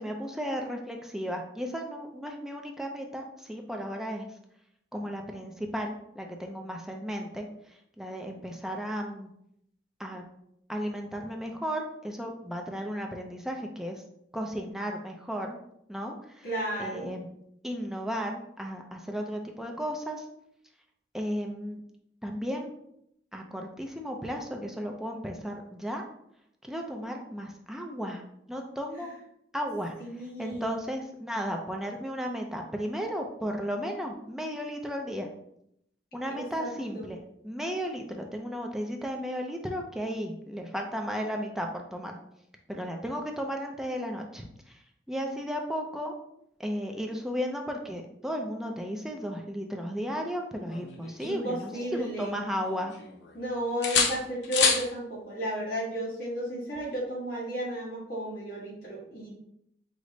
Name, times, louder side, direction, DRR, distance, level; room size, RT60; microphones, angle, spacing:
voice 1, 0.0-4.3 4.9-7.5 8.0-9.3 10.0-10.2 10.7-14.0 14.3-15.6 15.9-16.5 16.8-17.3 17.6-20.3 21.1-21.8 22.2-22.7 23.3-26.0 26.6-28.2 28.5-29.1 29.5-29.9 30.4-35.3 36.1-37.2 37.4-42.2 42.7-44.8 45.1-46.1 46.6-52.9, equal, 5° right, 2 dB, 0.4 m, -34 dB
voice 2, 16.4-17.1 29.0-29.1 30.0-30.8 36.4-37.1 51.2-52.3 53.3-59.3, right 1 dB, 55° left, -4 dB, 1.4 m, -33 dB
sound 1, 50.7-52.2 52.6-53.4 53.8-54.9 56.8-57.0, left 5 dB, 85° left, 0.7 m, -29 dB
4.9 x 2.1 x 3.9 m, 0.75 s
head